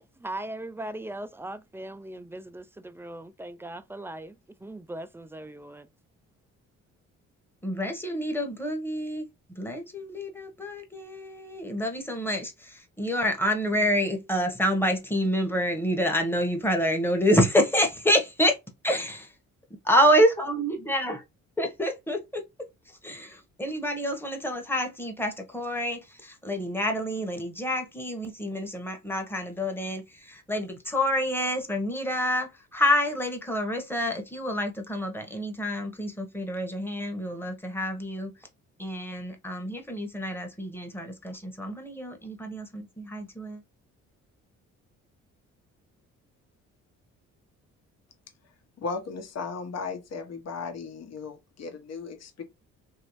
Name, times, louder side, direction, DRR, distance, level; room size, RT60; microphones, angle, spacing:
voice 1, 0.0-5.9, right 1 dB, 10° right, 0.3 m, -39 dB
voice 2, 7.6-9.3 9.6-18.6 18.8-19.3 19.8-21.2 21.6-22.4 22.9-38.3 38.8-43.6, equal, 5° left, 1.0 m, -27 dB
voice 3, 48.8-52.4, left 4 dB, 55° left, 1.0 m, -36 dB
3.0 x 2.8 x 3.0 m
cardioid pair, 90°, 30 cm